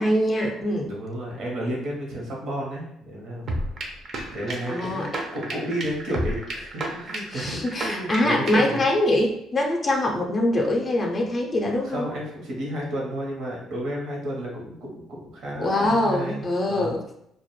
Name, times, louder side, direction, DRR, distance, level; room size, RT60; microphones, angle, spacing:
voice 1, 0.0-0.9 4.7-5.1 7.3-12.1 15.6-17.0, left 1 dB, 35° left, 0 dB, 0.4 m, -23 dB
voice 2, 0.9-3.5 4.3-8.8 11.8-16.9, right 1 dB, 70° right, -2 dB, 0.9 m, -32 dB
sound 1, 3.5-8.8, right 1 dB, 55° right, 0.5 m, -32 dB
2.2 x 2.0 x 3.0 m, 0.77 s
cardioid pair, 85°, 0 cm